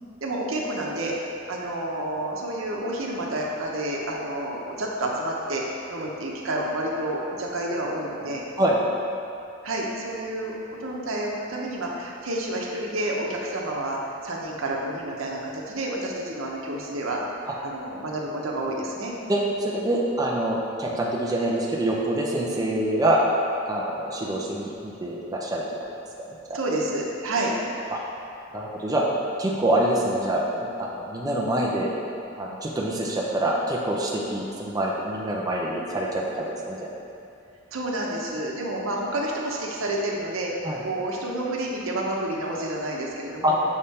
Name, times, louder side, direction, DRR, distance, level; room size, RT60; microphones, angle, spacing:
voice 1, 0.2-1.2 1.5-5.6 5.9-8.4 9.6-14.0 14.2-17.2 17.6-19.1 26.5-27.5 37.7-40.5 40.8-43.6, right 1 dB, 85° right, -2 dB, 0.8 m, -29 dB
voice 2, 19.3-23.2 23.7-25.6 26.5-26.6 27.9-28.0 28.5-29.0 29.4-30.4 30.8-31.9 32.4-36.9 40.6-40.8 43.4-43.5, right 1 dB, 20° right, -4 dB, 0.5 m, -25 dB
6.6 x 3.6 x 4.2 m, 2.7 s
head